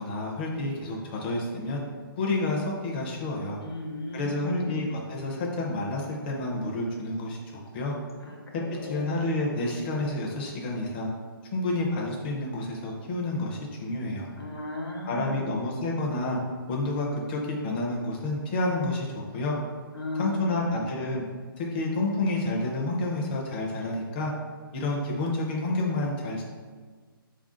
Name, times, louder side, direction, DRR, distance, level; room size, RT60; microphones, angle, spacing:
voice 1, 0.0-1.8 2.2-3.6 4.1-7.4 7.7-8.0 8.5-8.6 8.9-11.1 11.5-14.3 15.1-16.4 16.7-19.1 19.3-19.6 20.2-21.2 21.6-24.3 24.7-26.5, left 2 dB, 25° left, -3 dB, 0.4 m, -29 dB
voice 2, 3.6-4.9 8.2-9.2 14.4-15.5 19.9-20.9, equal, 85° left, 0 dB, 1.0 m, -36 dB
3.4 x 2.5 x 3.7 m, 1.5 s
hypercardioid pair, 160°, 12 cm